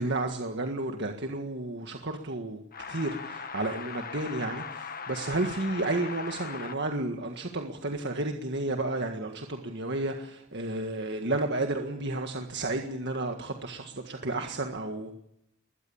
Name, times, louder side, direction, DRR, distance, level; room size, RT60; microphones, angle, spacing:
voice 1, 0.0-2.6 2.9-15.1, right 2 dB, 55° right, 4 dB, 1.7 m, -32 dB
sound 1, 2.7-6.8, left 6 dB, 40° left, 1.4 m, -39 dB
21.5 x 20.5 x 7.2 m, 0.78 s
head